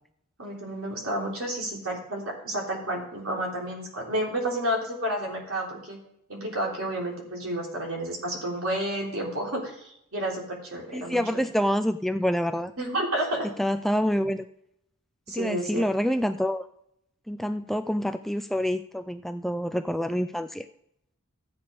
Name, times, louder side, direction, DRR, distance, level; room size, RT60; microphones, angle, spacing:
voice 1, 0.4-6.0 6.3-11.4 12.8-13.5 15.3-15.8, right 1 dB, 75° right, -2 dB, 3.6 m, -31 dB
voice 2, 10.9-12.7 13.6-14.5 15.3-16.6 17.3-20.6, equal, ahead, 9 dB, 0.3 m, -27 dB
13.0 x 8.6 x 5.1 m, 0.75 s
head